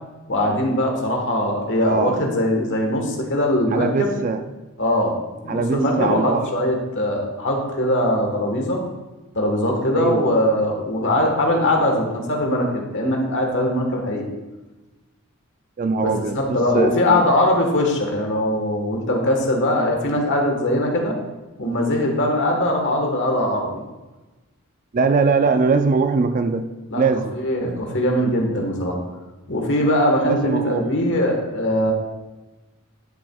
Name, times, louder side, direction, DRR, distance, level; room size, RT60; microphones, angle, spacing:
voice 1, 0.3-4.1 4.8-5.2 5.4-8.8 9.3-14.2 16.0-21.2 21.6-23.8 26.9-27.0 27.3-29.0 29.5-31.9, left 1 dB, 55° left, 2 dB, 1.4 m, -21 dB
voice 2, 1.8-2.3 3.7-4.4 5.5-6.5 9.9-10.4 15.8-17.2 24.9-26.7 27.0-27.4 30.2-30.9, right 4 dB, 35° right, 8 dB, 0.4 m, -21 dB
11.0 x 7.6 x 2.4 m, 1.1 s
head